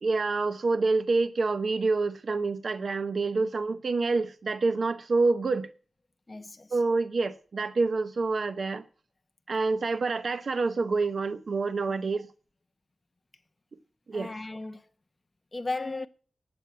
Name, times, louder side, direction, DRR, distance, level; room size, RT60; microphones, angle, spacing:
voice 1, 0.0-5.7 6.7-8.8 9.5-12.3 14.1-14.3, right 3 dB, 55° right, 0.7 m, -27 dB
voice 2, 6.3-6.7 11.9-12.0 14.1-14.9 15.5-16.1, left 2 dB, 25° left, 0.9 m, -35 dB
8.9 x 8.6 x 9.3 m
wide cardioid pair, 120°, 0 cm